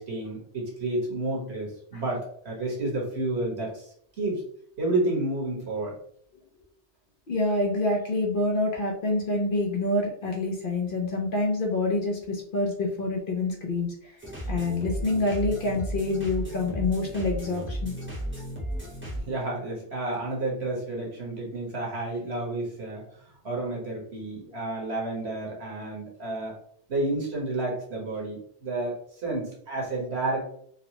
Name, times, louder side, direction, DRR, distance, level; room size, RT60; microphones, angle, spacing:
voice 1, 0.0-3.9 4.2-4.4 4.8-5.9 19.2-23.0 23.4-26.5 26.9-30.4, right 2 dB, 65° right, -3 dB, 1.5 m, -30 dB
voice 2, 7.3-14.1 14.5-17.9, left 2 dB, 55° left, 0 dB, 0.8 m, -27 dB
sound 1, 14.2-19.2, right 1 dB, 10° right, 0.9 m, -34 dB
3.9 x 2.1 x 2.9 m, 0.64 s
omnidirectional pair, 1.2 m